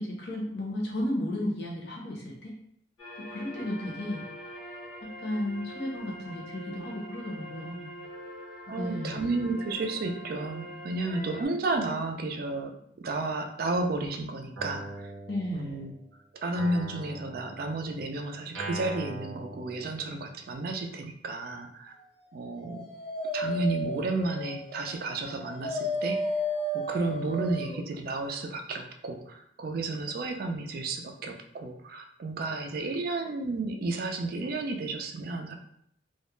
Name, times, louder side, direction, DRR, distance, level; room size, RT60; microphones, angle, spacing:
voice 1, 0.0-2.5 3.2-4.2 5.0-7.9 8.8-9.4 15.3-15.8, left 1 dB, 60° left, -2 dB, 0.7 m, -34 dB
sound 1, 3.0-11.5, equal, 90° left, 1.0 m, -44 dB
voice 2, 8.7-15.1 15.5-15.9 16.3-21.9 22.3-22.8 23.3-26.2 26.7-35.5, right 2 dB, 50° right, 5 dB, 0.3 m, -32 dB
Guitar, 14.6-16.1 16.6-20.4, right 2 dB, 90° right, 0.6 m, -42 dB
Dog, 22.3-27.9, equal, 30° left, 0.4 m, -34 dB
2.3 x 2.1 x 3.0 m, 0.71 s
head